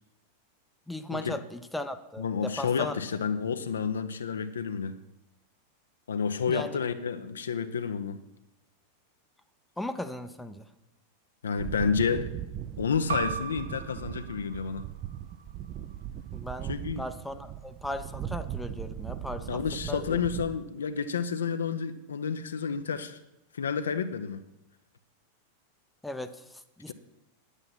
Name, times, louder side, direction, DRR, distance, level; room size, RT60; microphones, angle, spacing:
voice 1, 0.9-2.9 6.5-6.8 9.8-10.7 16.3-19.6 19.9-20.2 26.0-26.9, left 1 dB, 5° left, 9 dB, 0.7 m, -37 dB
voice 2, 2.2-4.9 6.1-8.2 11.4-12.3 12.8-14.8 16.7-17.1 19.5-23.2 23.5-24.4 26.9-27.0, left 6 dB, 70° left, 9 dB, 0.7 m, -30 dB
sound 1, 11.6-20.6, right 11 dB, 35° right, 0.6 m, -39 dB
sound 2, 13.1-18.3, right 6 dB, 65° right, 1.0 m, -41 dB
9.9 x 8.1 x 5.8 m, 0.90 s
figure-of-eight pair, 90°, 0 cm